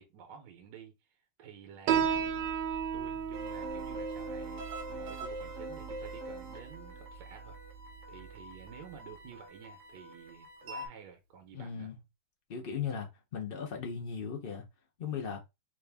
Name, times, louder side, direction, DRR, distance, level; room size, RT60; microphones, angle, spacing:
voice 1, 0.0-2.5 2.9-4.6 4.9-7.5 8.1-11.9, right 8 dB, 70° right, 1.4 m, -51 dB
Piano, 1.9-8.9, right 8 dB, 85° right, 1.3 m, -36 dB
sound 1, 3.3-10.9, right 1 dB, 50° right, 1.0 m, -44 dB
voice 2, 11.5-12.0 12.5-14.7 15.0-15.4, left 7 dB, 55° left, 0.6 m, -37 dB
3.7 x 2.6 x 3.4 m
omnidirectional pair, 2.1 m